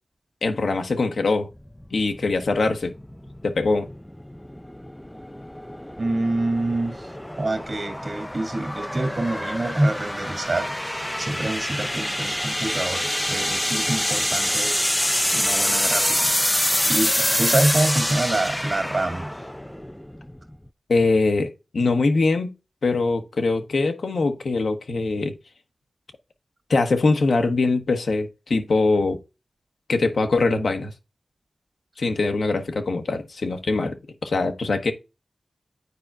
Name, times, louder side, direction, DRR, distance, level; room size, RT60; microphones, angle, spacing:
voice 1, 0.4-1.5 1.9-2.9 3.4-3.9 20.9-22.5 22.8-25.3 26.7-29.2 29.9-30.9 32.0-34.0 34.2-34.9, left 3 dB, 80° left, 0.9 m, -22 dB
sound 1, 1.6-20.7, left 1 dB, 10° left, 0.4 m, -26 dB
voice 2, 6.0-7.1 7.4-14.9 15.3-19.3, right 2 dB, 55° right, 1.9 m, -26 dB
9.7 x 4.4 x 2.4 m
cardioid pair, 55°, 0 cm